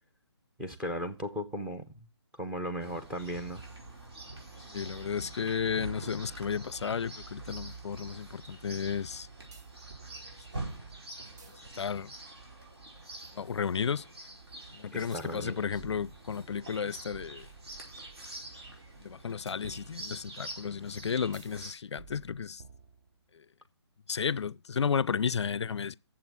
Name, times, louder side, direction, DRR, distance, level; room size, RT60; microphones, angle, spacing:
voice 1, 0.6-2.1 2.4-3.6 14.9-15.6, equal, 5° right, 0.7 m, -36 dB
Chirp tweet, 2.8-21.7, right 2 dB, 65° right, 5.1 m, -46 dB
voice 2, 4.7-9.3 11.8-12.1 13.3-14.0 14.7-17.5 19.0-22.6 24.1-25.9, left 6 dB, 75° left, 0.4 m, -33 dB
sound 1, 9.5-10.1 11.2-12.5 15.1-16.8 19.5-20.5 21.3-21.6 22.0-23.3, right 5 dB, 40° right, 1.1 m, -54 dB
8.8 x 7.3 x 6.1 m
hypercardioid pair, 160°, 15 cm